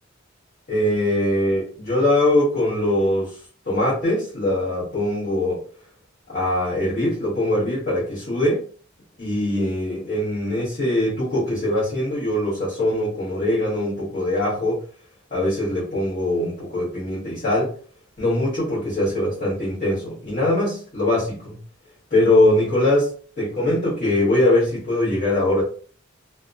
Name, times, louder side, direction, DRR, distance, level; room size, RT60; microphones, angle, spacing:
voice 1, 0.7-3.3 3.6-5.6 6.3-8.6 9.2-14.8 15.3-17.7 18.2-21.6 22.1-23.1 23.4-25.6, left 1 dB, 45° left, -9 dB, 1.0 m, -22 dB
2.8 x 2.1 x 2.5 m, 0.43 s
head